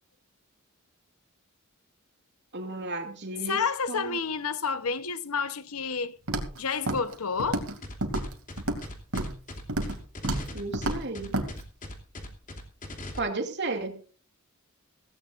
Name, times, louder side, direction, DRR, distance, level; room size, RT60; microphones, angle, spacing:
voice 1, 2.5-4.2 10.5-11.4 13.2-14.0, right 3 dB, 55° right, 2.7 m, -34 dB
voice 2, 3.5-6.2 6.6-7.6, left 5 dB, 90° left, 1.1 m, -30 dB
Walk footsteps, 6.3-6.6 6.9-7.1 7.4-7.8 8.0-8.8 9.1-9.4 9.7-10.0 10.2-10.5 10.7-11.0 11.3-11.5, right 1 dB, 85° right, 2.7 m, -29 dB
sound 1, 7.8-13.2, left 1 dB, 40° left, 2.9 m, -40 dB
17.0 x 17.0 x 2.6 m
head